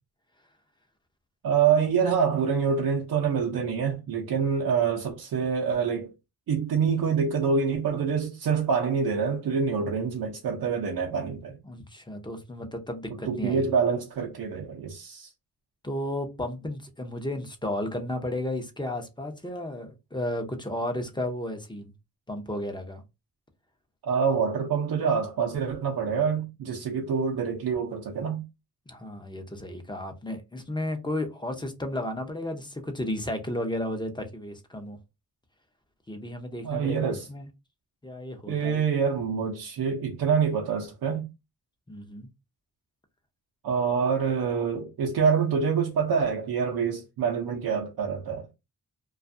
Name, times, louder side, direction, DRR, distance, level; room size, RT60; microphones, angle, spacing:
voice 1, 1.4-6.1 6.5-11.6 13.2-15.3 24.0-28.4 36.6-37.3 38.5-41.3 43.6-48.5, right 6 dB, 70° right, 0.6 m, -26 dB
voice 2, 11.6-13.7 15.8-21.9 22.3-23.0 28.9-35.0 36.1-37.5 38.0-38.8 41.9-42.3, left 1 dB, 10° left, 0.6 m, -33 dB
2.5 x 2.3 x 2.5 m
cardioid pair, 75°, 39 cm